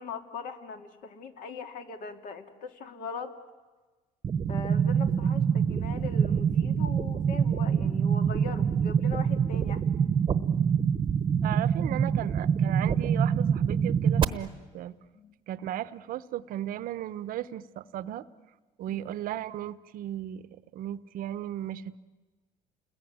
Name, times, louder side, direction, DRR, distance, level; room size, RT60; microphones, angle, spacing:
voice 1, 0.0-3.3 4.5-9.8 15.1-15.4 18.9-19.2, left 4 dB, 55° left, 7 dB, 2.4 m, -40 dB
sound 1, 4.2-14.2, right 7 dB, 30° right, 1.0 m, -25 dB
voice 2, 11.4-15.0 15.5-18.2 18.8-20.5 20.7-22.0, right 12 dB, 60° right, 16 dB, 0.9 m, -36 dB
30.0 x 20.5 x 9.4 m, 1.3 s
cardioid pair, 135°, 16 cm